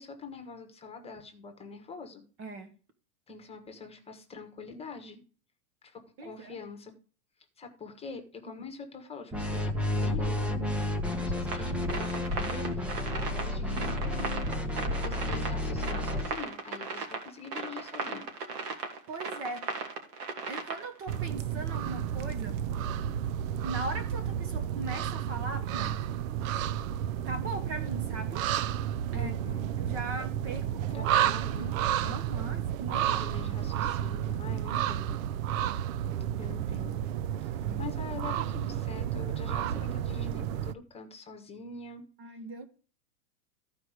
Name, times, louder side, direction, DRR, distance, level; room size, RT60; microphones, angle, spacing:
voice 1, 0.0-2.2 3.3-5.2 5.8-6.9 7.6-9.7 10.0-18.3 29.1-29.7 30.9-31.7 33.0-35.2 36.3-37.0 37.4-42.1, left 5 dB, 15° left, 1.4 m, -44 dB
voice 2, 2.4-2.7 6.2-6.6 19.1-19.8 20.5-22.6 23.6-26.1 27.3-28.4 29.1-29.3 29.8-33.2 37.6-37.8 42.2-42.6, right 2 dB, 30° right, 1.2 m, -40 dB
sound 1, 9.3-16.4, left 1 dB, 5° right, 0.5 m, -31 dB
sound 2, 11.4-21.2, right 5 dB, 80° right, 2.8 m, -37 dB
sound 3, 21.1-40.7, right 10 dB, 60° right, 0.6 m, -31 dB
14.5 x 4.9 x 4.9 m
supercardioid pair, 145°, 46 cm